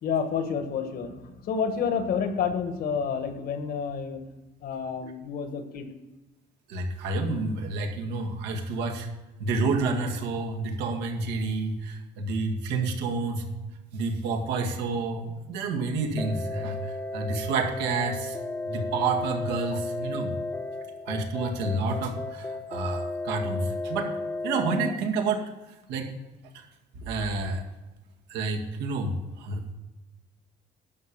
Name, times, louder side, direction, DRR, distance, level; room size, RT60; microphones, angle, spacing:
voice 1, 0.0-1.1 1.4-4.2 4.6-5.9, left 6 dB, 65° left, 8 dB, 1.6 m, -29 dB
voice 2, 6.7-9.1 9.4-13.4 13.9-16.8 17.1-18.4 18.7-20.3 21.1-24.1 24.4-25.4 25.9-26.1 26.5-26.6 27.0-27.6 28.3-29.1 29.4-29.6, right 3 dB, 90° right, 2 dB, 1.9 m, -29 dB
sound 1, 16.2-24.9, left 2 dB, 10° left, 0.8 m, -34 dB
11.5 x 5.4 x 7.4 m, 1.1 s
cardioid pair, 110°, 17 cm